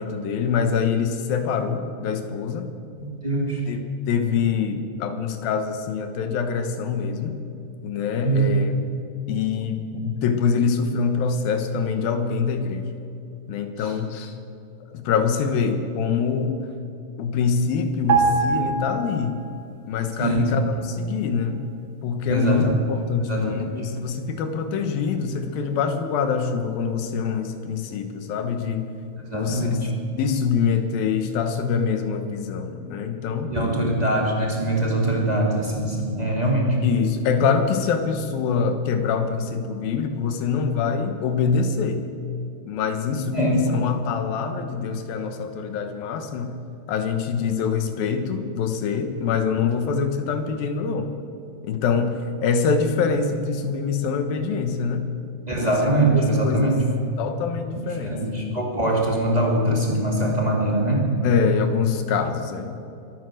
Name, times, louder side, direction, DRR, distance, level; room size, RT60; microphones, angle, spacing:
voice 1, 0.0-2.7 3.7-3.8 4.1-7.4 7.8-8.8 9.3-12.9 13.5-14.3 14.9-16.6 17.2-19.4 19.9-21.6 22.0-28.9 29.3-29.9 30.2-33.6 36.8-42.1 42.7-46.5 46.9-51.1 51.6-55.1 55.7-55.8 56.1-56.8 57.2-58.2 61.2-62.7, left 6 dB, 80° left, 7 dB, 3.0 m, -25 dB
voice 2, 3.0-3.6 8.2-8.6 13.8-13.9 20.2-20.4 22.3-22.7 23.2-23.8 29.3-29.9 33.5-36.8 43.3-43.6 55.5-56.8 57.9-61.2, right 1 dB, 15° right, -2 dB, 1.6 m, -22 dB
sound 1, 18.1-19.7 20.0-20.2, right 5 dB, 45° right, 2.4 m, -23 dB
23.0 x 9.3 x 6.4 m, 2.7 s
omnidirectional pair, 4.1 m